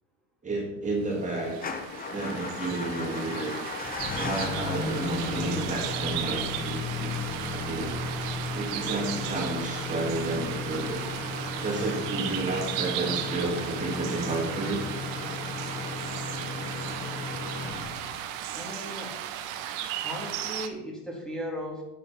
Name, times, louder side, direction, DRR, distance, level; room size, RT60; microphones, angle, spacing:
voice 1, 0.4-1.6 2.1-3.5 4.2-7.2 7.5-8.0 8.5-11.1 11.6-14.8, right 2 dB, 15° right, 0 dB, 2.0 m, -31 dB
sound 1, 1.2-20.7, right 11 dB, 70° right, 1.3 m, -36 dB
Motor vehicle (road) / Engine starting / Idling, 1.5-18.5, left 4 dB, 20° left, 1.0 m, -35 dB
voice 2, 18.5-19.2 20.0-21.8, equal, ahead, -2 dB, 2.2 m, -36 dB
9.6 x 8.5 x 5.6 m, 0.92 s
cardioid pair, 145°, 42 cm